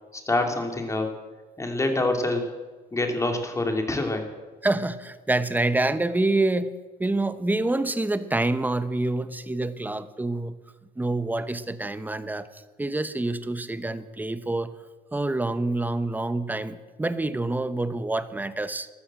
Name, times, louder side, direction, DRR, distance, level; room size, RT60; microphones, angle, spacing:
voice 1, 0.1-1.1 1.6-2.5 2.9-4.3, left 2 dB, 15° left, 4 dB, 2.7 m, -26 dB
voice 2, 4.6-6.7 7.0-10.5 11.0-14.7 15.1-18.9, right 2 dB, 10° right, 12 dB, 0.9 m, -27 dB
14.0 x 13.0 x 7.6 m, 1.3 s
cardioid pair, 110°, 17 cm